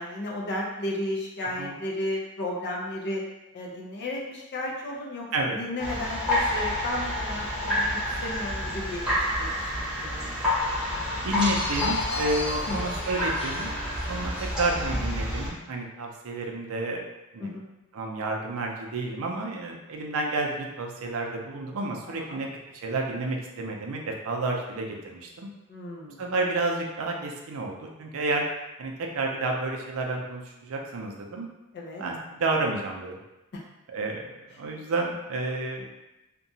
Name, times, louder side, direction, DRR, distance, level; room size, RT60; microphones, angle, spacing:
voice 1, 0.0-3.2 3.5-9.0 9.4-10.4 12.7-12.8 17.4-17.6 22.1-22.4 25.7-26.2 31.7-32.0 33.5-33.6, left 1 dB, 50° left, -3 dB, 0.5 m, -34 dB
sound 1, 5.8-15.5, left 1 dB, ahead, 1.0 m, -29 dB
voice 2, 11.2-13.7 14.1-14.3 14.6-17.0 17.3-17.6 17.9-22.5 22.7-25.5 26.2-28.4 28.8-31.5 32.0-33.2 33.9-35.9, right 2 dB, 65° right, 1 dB, 0.4 m, -30 dB
sound 2, 11.4-14.6, left 1 dB, 75° left, 1.2 m, -36 dB
2.8 x 2.2 x 2.6 m, 0.97 s
head